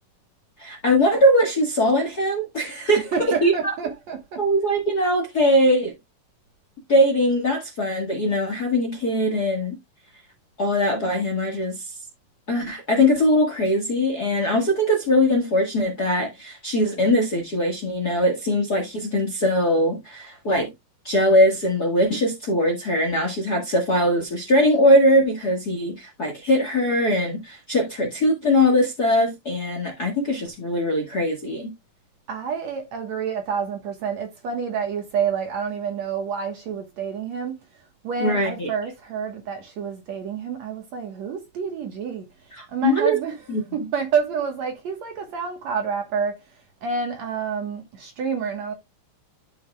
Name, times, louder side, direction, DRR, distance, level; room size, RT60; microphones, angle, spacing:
voice 1, 0.6-3.5 4.4-6.0 6.9-9.7 10.6-11.9 12.5-20.7 21.0-31.7 38.2-38.7 42.5-43.2 43.5-43.6, equal, 40° left, 1.5 m, -21 dB
voice 2, 3.1-4.4 32.3-37.6 38.0-43.3 43.7-46.4 46.8-48.7, right 6 dB, 60° right, 2.2 m, -28 dB
12.0 x 5.8 x 2.3 m
omnidirectional pair, 4.2 m